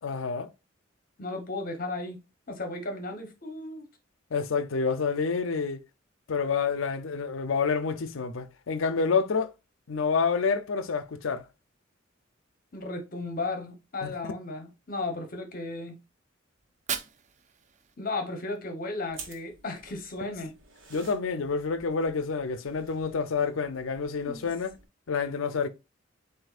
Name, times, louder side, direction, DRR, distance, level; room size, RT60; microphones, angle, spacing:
voice 1, 0.0-0.5 4.3-5.8 6.3-9.5 9.9-11.4 14.0-14.1 20.9-24.7 25.1-25.7, left 5 dB, 80° left, 0.6 m, -28 dB
voice 2, 1.2-3.9 12.7-16.0 18.0-20.5 24.2-24.5, left 2 dB, 45° left, 1.1 m, -35 dB
Fire, 16.6-18.6, right 8 dB, 35° right, 0.4 m, -39 dB
sound 1, 19.1-24.9, right 5 dB, 70° right, 1.2 m, -51 dB
7.6 x 2.6 x 2.4 m
head